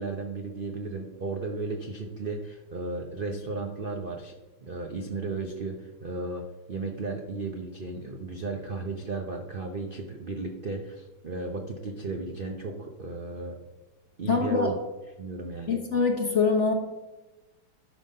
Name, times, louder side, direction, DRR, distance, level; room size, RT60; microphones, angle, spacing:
voice 1, 0.0-4.3 4.6-13.6 14.2-14.8 15.2-15.8, right 3 dB, 65° right, 3 dB, 0.5 m, -34 dB
voice 2, 14.3-14.7 15.7-16.7, left 4 dB, 45° left, 3 dB, 1.0 m, -24 dB
11.0 x 5.7 x 5.4 m, 1.1 s
omnidirectional pair, 2.2 m